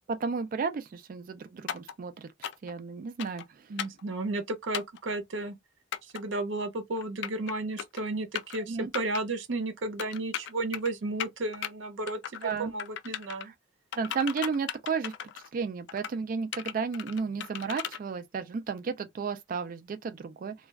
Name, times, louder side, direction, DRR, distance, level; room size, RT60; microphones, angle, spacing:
voice 1, 0.1-2.3 2.6-3.4 8.7-8.9 12.4-12.7 13.4-13.5 14.0-15.1 15.5-20.5, right 5 dB, 45° right, 0.3 m, -33 dB
sound 1, 1.7-1.9 2.4-2.7 3.2-3.5 3.8-4.0 4.7-5.0 5.9-6.2 7.0-7.5 7.8-8.0 8.4-8.6 8.9-9.2 10.0-10.9 11.2-11.7 12.1-12.5 12.8-13.5 13.9-15.5 15.9-16.2 16.5-18.0, left 9 dB, 60° left, 0.3 m, -36 dB
voice 2, 3.7-5.6 6.1-13.5, right 2 dB, 75° right, 0.7 m, -33 dB
2.3 x 2.2 x 3.2 m
head